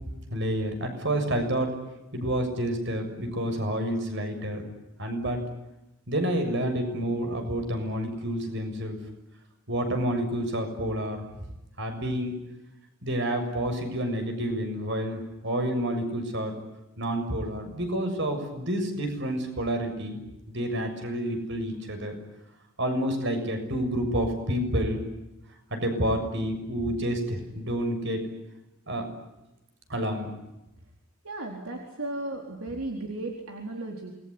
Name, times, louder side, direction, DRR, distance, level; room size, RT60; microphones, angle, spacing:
voice 1, 0.3-1.7 2.1-4.6 5.0-5.4 6.1-9.0 9.7-11.2 11.8-12.3 13.0-16.5 17.0-20.2 20.5-22.2 22.8-25.0 25.7-28.3 28.9-29.1 29.9-30.3, right 1 dB, 55° right, 6 dB, 7.0 m, -29 dB
voice 2, 31.2-34.1, right 2 dB, 75° right, 1 dB, 4.3 m, -35 dB
28.0 x 21.0 x 9.9 m, 0.96 s
head